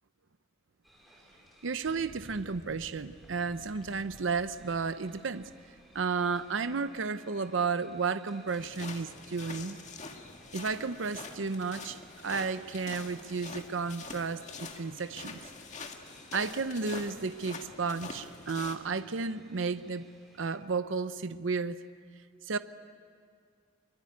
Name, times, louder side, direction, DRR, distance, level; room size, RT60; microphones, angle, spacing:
sound 1, 0.8-20.6, equal, ahead, 6.2 m, -58 dB
voice 1, 1.6-5.5 5.9-9.8 10.5-15.4 16.3-20.1 20.4-21.8 22.5-22.6, right 4 dB, 70° right, 12 dB, 0.7 m, -33 dB
sound 2, 8.5-18.8, left 4 dB, 40° left, 1.9 m, -45 dB
23.5 x 23.5 x 9.6 m, 2.2 s
head